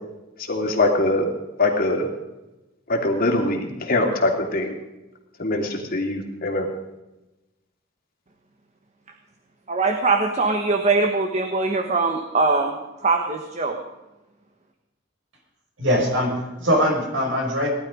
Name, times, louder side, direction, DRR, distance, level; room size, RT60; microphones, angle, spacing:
voice 1, 0.5-1.3 1.6-2.1 2.9-4.7 5.4-6.7, left 2 dB, 45° left, 1 dB, 2.8 m, -22 dB
voice 2, 9.7-12.8 13.0-13.8, right 3 dB, 35° right, 4 dB, 1.3 m, -22 dB
voice 3, 15.8-17.7, equal, 70° right, 1 dB, 5.8 m, -22 dB
19.0 x 12.0 x 5.2 m, 1.0 s
head